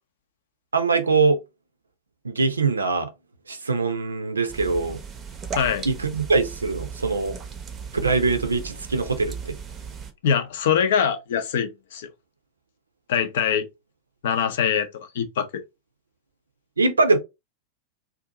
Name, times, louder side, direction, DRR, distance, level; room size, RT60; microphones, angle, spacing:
voice 1, 0.7-1.4 2.2-3.1 3.5-5.0 5.9-7.4 8.0-9.6 16.8-17.2, right 3 dB, 75° right, 0.5 m, -22 dB
sound 1, 4.5-10.1, right 6 dB, 25° right, 0.6 m, -36 dB
voice 2, 5.5-5.8 10.2-12.1 13.1-13.7 14.2-14.9 15.1-15.6, left 8 dB, 55° left, 0.6 m, -23 dB
2.7 x 2.4 x 3.7 m
figure-of-eight pair, 90°, 0 cm